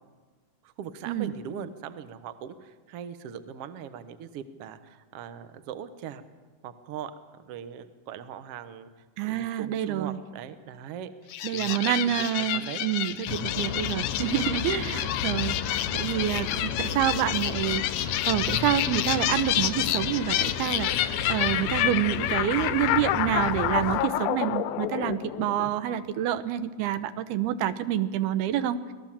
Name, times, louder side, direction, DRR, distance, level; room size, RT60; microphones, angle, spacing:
voice 1, 0.6-6.2 6.6-7.1 7.4-8.9 9.2-11.1 11.5-12.9 14.9-15.1 26.8-26.9, right 8 dB, 70° right, 11 dB, 1.4 m, -40 dB
voice 2, 9.2-10.2 11.4-28.8, right 11 dB, 85° right, 12 dB, 2.9 m, -28 dB
sound 1, 11.3-26.0, left 13 dB, 90° left, 2.8 m, -29 dB
sound 2, 13.3-24.0, left 7 dB, 70° left, 1.8 m, -34 dB
26.0 x 18.5 x 7.5 m, 1.4 s
omnidirectional pair, 4.4 m